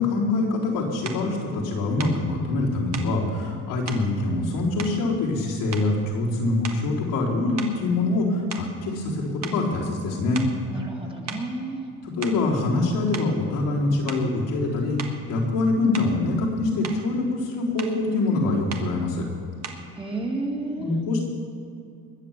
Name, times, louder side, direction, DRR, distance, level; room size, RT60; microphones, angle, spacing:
voice 1, 0.0-10.4 12.0-15.0 15.3-19.2 20.7-21.2, left 2 dB, 90° left, -5 dB, 4.0 m, -24 dB
sound 1, 1.0-1.3 2.0-2.2 2.9-3.2 3.9-4.1 4.8-5.4 5.7-6.1 6.6-7.0 7.6-9.1 9.4-9.6 10.3-10.6 11.3-11.5 12.0-12.5 13.1-13.3 14.1-14.3 15.0-15.2 15.9-16.2 16.6-17.1 17.8-18.0 18.7-18.9 19.6-19.9, right 6 dB, 55° right, 1.6 m, -38 dB
voice 2, 10.7-11.8 19.9-20.9, right 2 dB, 15° right, 0 dB, 2.2 m, -31 dB
21.5 x 7.5 x 7.4 m, 2.5 s
cardioid pair, 115°, 32 cm